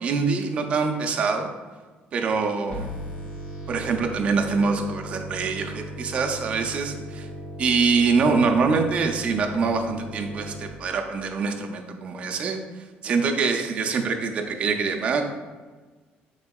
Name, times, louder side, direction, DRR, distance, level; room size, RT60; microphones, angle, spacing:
voice 1, 0.0-1.5 2.1-2.9 3.7-7.3 7.6-12.6 13.0-15.2, right 4 dB, 35° right, 4 dB, 0.3 m, -24 dB
sound 1, 2.7-10.7, right 1 dB, 40° left, 0.6 m, -37 dB
3.6 x 3.5 x 2.3 m, 1.4 s
cardioid pair, 175°, 4 cm